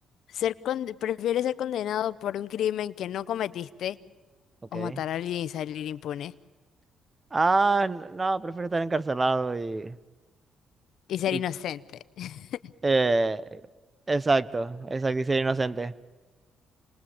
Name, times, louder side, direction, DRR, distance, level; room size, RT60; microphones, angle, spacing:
voice 1, 0.3-4.0 4.7-6.3 11.1-11.8 12.2-12.7, left 11 dB, 75° left, 16 dB, 0.8 m, -30 dB
voice 2, 7.3-9.9 11.3-11.4 12.8-13.6 14.1-15.9, right 3 dB, 25° right, 18 dB, 0.9 m, -26 dB
28.5 x 21.0 x 8.7 m, 1.3 s
cardioid pair, 90°, 0 cm